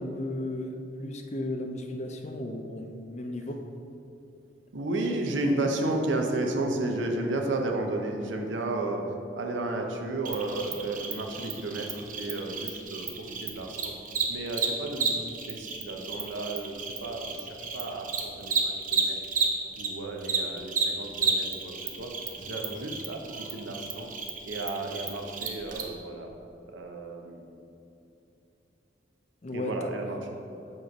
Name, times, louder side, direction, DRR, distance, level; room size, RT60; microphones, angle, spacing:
voice 1, 0.0-3.6 22.6-22.8 29.4-29.9, left 1 dB, 40° left, 4 dB, 0.5 m, -35 dB
voice 2, 4.7-9.0 9.3-13.9 14.3-19.2 19.8-24.1 24.4-26.4 26.6-27.6 29.5-30.2, right 2 dB, 90° right, 2 dB, 0.7 m, -33 dB
Cricket, 10.2-19.9 20.2-25.8, right 5 dB, 45° right, 0.6 m, -32 dB
7.4 x 3.2 x 5.1 m, 2.8 s
head